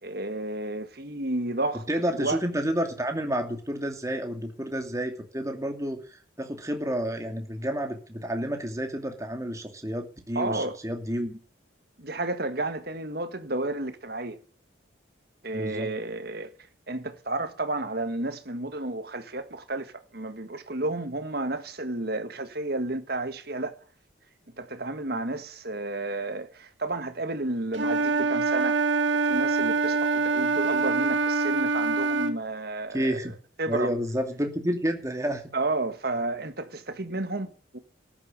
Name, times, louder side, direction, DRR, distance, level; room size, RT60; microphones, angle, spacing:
voice 1, 0.0-2.4 10.3-10.8 12.0-14.4 15.4-16.5 16.9-23.8 24.6-28.8 29.1-33.2 33.6-33.9 35.5-37.8, right 2 dB, 55° right, 1.7 m, -31 dB
voice 2, 1.9-11.4 15.5-15.9 32.9-33.3 33.7-35.4, equal, 15° right, 2.4 m, -30 dB
Wind instrument woodwind instrument, 27.7-32.4, right 4 dB, 70° right, 1.7 m, -25 dB
13.5 x 11.0 x 7.6 m
head